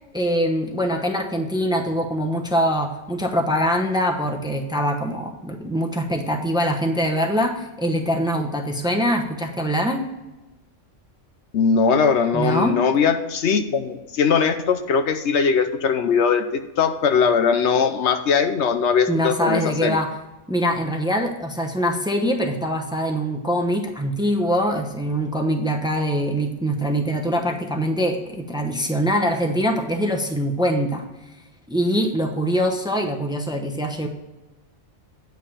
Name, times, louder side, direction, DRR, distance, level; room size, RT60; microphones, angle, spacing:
voice 1, 0.1-10.0 12.3-12.8 19.1-20.1 20.5-31.0 31.7-34.1, equal, 5° right, 4 dB, 0.8 m, -23 dB
voice 2, 11.5-20.0, left 6 dB, 70° left, 9 dB, 1.0 m, -20 dB
9.1 x 5.5 x 5.5 m, 1.0 s
omnidirectional pair, 1.2 m